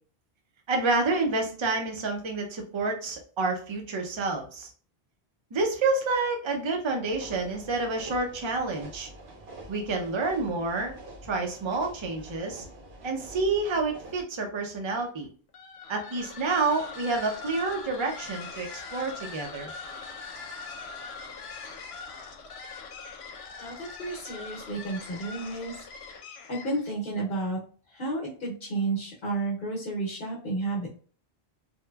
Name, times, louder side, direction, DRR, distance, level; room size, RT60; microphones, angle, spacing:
voice 1, 0.7-4.7 5.5-9.1 9.7-11.0 11.3-12.6 13.0-15.3 15.9-19.7, right 3 dB, 40° right, 2 dB, 0.5 m, -28 dB
sound 1, 7.1-14.2, right 1 dB, 75° right, 0.9 m, -46 dB
sound 2, 15.5-26.9, left 4 dB, 90° left, 0.9 m, -42 dB
voice 2, 23.6-25.7 26.2-27.6 27.9-30.9, right 2 dB, 60° left, -2 dB, 0.9 m, -32 dB
3.0 x 2.1 x 2.2 m, 0.41 s
omnidirectional pair, 1.1 m